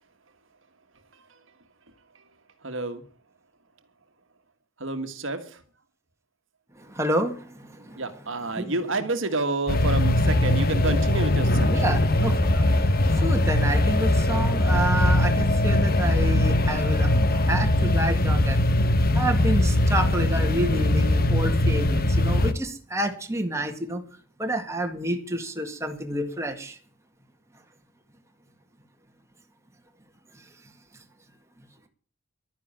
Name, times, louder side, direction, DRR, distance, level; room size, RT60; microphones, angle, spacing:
voice 1, 2.6-3.0 4.8-5.6 7.9-11.7, right 2 dB, 60° right, 8 dB, 1.7 m, -29 dB
voice 2, 6.8-8.0 8.5-8.7 11.7-18.6 19.1-24.0 24.4-26.8 30.3-30.4, right 1 dB, 15° right, 3 dB, 1.9 m, -29 dB
sound 1, 9.7-22.5, left 1 dB, 45° left, 1.1 m, -21 dB
11.5 x 10.0 x 8.8 m, 0.43 s
head